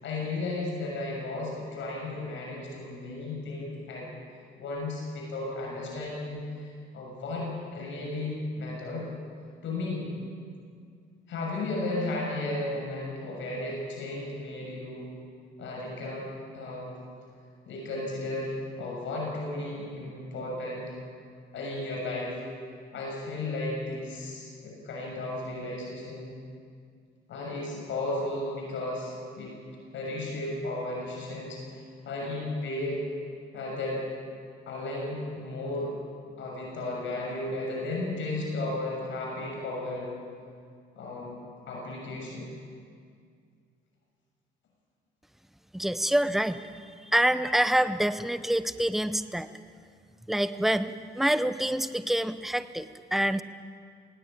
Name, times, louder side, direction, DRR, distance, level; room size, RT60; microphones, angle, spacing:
voice 1, 0.0-4.1 4.6-9.1 9.6-10.1 11.3-15.1 15.6-16.3 16.5-17.0 17.7-21.0 21.5-22.4 22.9-26.3 27.3-29.5 29.9-33.0 33.5-34.0 34.7-35.9 36.4-40.1 40.9-41.3 41.7-42.5, left 2 dB, 75° left, -2 dB, 6.7 m, -34 dB
voice 2, 45.7-46.6 47.0-49.5 50.3-53.4, right 1 dB, ahead, 12 dB, 0.8 m, -26 dB
19.0 x 18.5 x 8.9 m, 2.2 s
cardioid pair, 90°, 20 cm